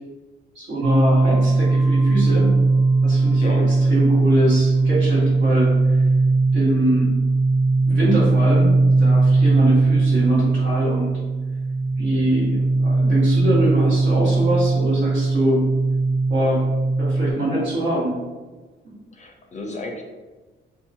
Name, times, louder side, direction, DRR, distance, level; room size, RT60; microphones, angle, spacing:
voice 1, 0.5-2.5 3.0-6.0 6.5-7.1 7.9-11.1 12.0-15.6 16.3-16.7 17.0-18.2 18.8-19.0, right 1 dB, 70° right, -7 dB, 1.3 m, -24 dB
sound 1, 0.8-17.3, right 3 dB, 85° right, 0.7 m, -19 dB
voice 2, 19.1-20.0, left 2 dB, 35° left, 1 dB, 0.4 m, -33 dB
2.8 x 2.2 x 2.6 m, 1.3 s
cardioid pair, 90°, 20 cm